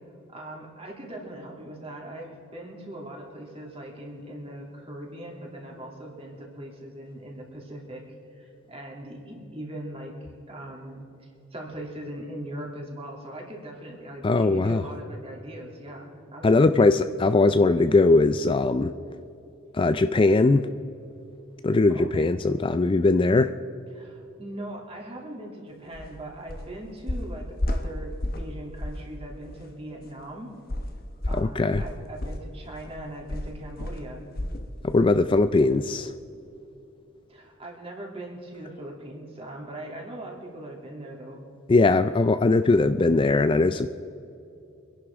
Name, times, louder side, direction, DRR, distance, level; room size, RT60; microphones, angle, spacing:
voice 1, 0.3-8.1 8.3-10.1 10.5-16.9 21.9-22.3 23.9-30.5 31.3-34.3 37.3-41.4, right 1 dB, 30° right, -1 dB, 2.8 m, -40 dB
voice 2, 14.2-14.8 16.4-18.9 19.7-20.7 21.6-23.5 31.3-31.8 34.8-36.1 41.7-43.9, left 3 dB, 25° left, 10 dB, 0.3 m, -20 dB
sound 1, 25.9-26.1 26.5-26.7 27.1-28.5 28.8-29.1 29.5-29.6 30.7-34.7 35.0-35.2 35.6-35.7, left 1 dB, 45° left, 1.0 m, -31 dB
25.0 x 11.0 x 3.6 m, 2.7 s
head